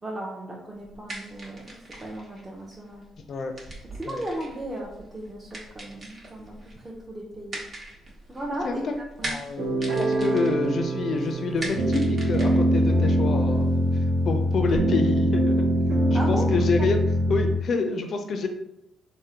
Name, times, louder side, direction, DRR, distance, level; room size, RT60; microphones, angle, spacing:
voice 1, 0.0-3.0 4.0-7.6 8.3-8.8 9.2-9.4 16.1-16.5, right 1 dB, 25° right, -3 dB, 0.6 m, -36 dB
sound 1, 0.8-14.8, right 1 dB, 45° right, 0.9 m, -42 dB
voice 2, 9.2-13.7 14.3-15.7 16.1-17.0 17.3-18.5, left 4 dB, 55° left, 5 dB, 0.4 m, -27 dB
sound 2, 9.6-17.6, equal, 65° right, 0.6 m, -23 dB
3.6 x 2.0 x 2.8 m, 0.82 s
cardioid pair, 90°, 0 cm